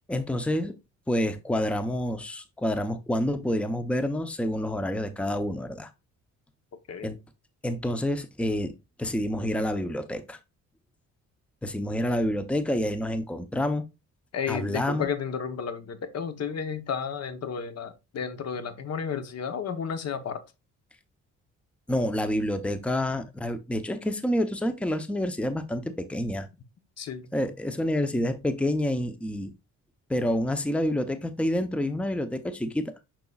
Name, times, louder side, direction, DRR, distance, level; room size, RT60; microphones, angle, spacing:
voice 1, 0.1-0.7 1.1-5.9 7.0-7.2 7.6-10.4 11.6-13.8 14.5-15.1 21.9-26.5 27.3-29.5 30.1-32.9, left 1 dB, 5° left, 0.7 m, -28 dB
voice 2, 14.3-20.4 27.0-27.3, left 7 dB, 55° left, 1.1 m, -32 dB
6.7 x 6.0 x 2.4 m
cardioid pair, 90°, 30 cm